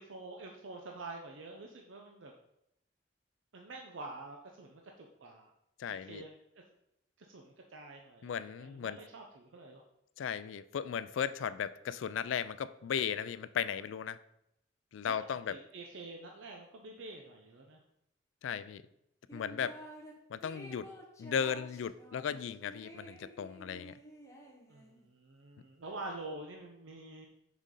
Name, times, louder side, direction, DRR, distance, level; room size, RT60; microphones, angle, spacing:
voice 1, 0.0-2.3 3.5-5.5 5.9-6.4 7.2-9.8 15.0-15.1 15.5-17.8 24.7-27.3, right 2 dB, 80° right, 1 dB, 0.7 m, -47 dB
voice 2, 5.8-6.2 8.2-9.0 10.2-14.2 14.9-15.5 18.4-18.8 19.3-19.7 20.3-20.9 21.2-24.0, left 7 dB, 80° left, 15 dB, 0.3 m, -36 dB
sound 1, 19.3-20.1 20.4-25.1, equal, 15° left, 1.0 m, -51 dB
6.3 x 5.1 x 3.8 m, 0.81 s
head